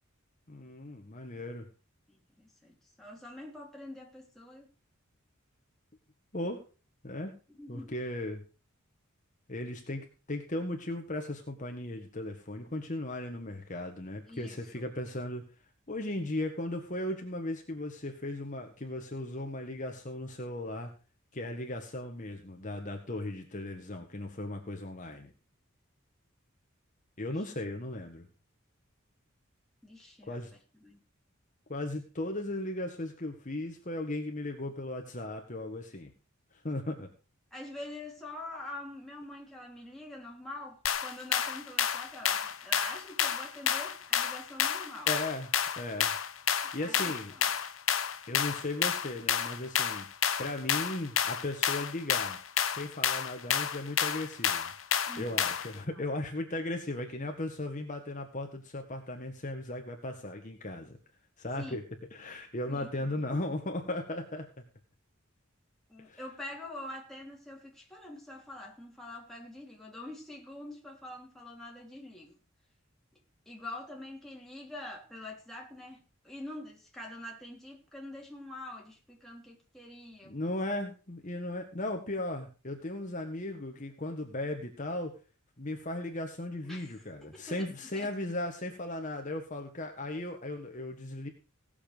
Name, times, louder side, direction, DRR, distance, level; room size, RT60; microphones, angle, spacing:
voice 1, 0.5-1.7 6.3-6.6 7.0-7.3 7.7-8.4 9.5-15.4 15.9-20.9 21.3-25.3 27.2-28.3 30.3-30.5 31.7-36.1 36.6-37.1 45.1-45.5 45.8-46.1 46.7-47.3 48.3-50.1 50.4-52.4 52.7-54.7 55.2-61.0 61.4-61.8 62.1-64.6 66.0-66.2 80.2-85.1 85.6-91.3, left 1 dB, 40° left, 3 dB, 1.7 m, -37 dB
voice 2, 2.1-4.7 7.5-7.9 14.3-14.9 29.8-30.4 30.8-31.0 37.5-45.2 46.8-47.5 55.0-55.4 55.8-56.1 61.6-61.8 62.7-63.2 65.9-72.4 73.4-76.0 76.2-80.5 86.7-87.7 87.9-88.1, left 1 dB, ahead, -2 dB, 3.2 m, -45 dB
sound 1, 40.9-55.8, left 9 dB, 75° left, 1.0 m, -30 dB
17.5 x 7.2 x 5.2 m, 0.34 s
head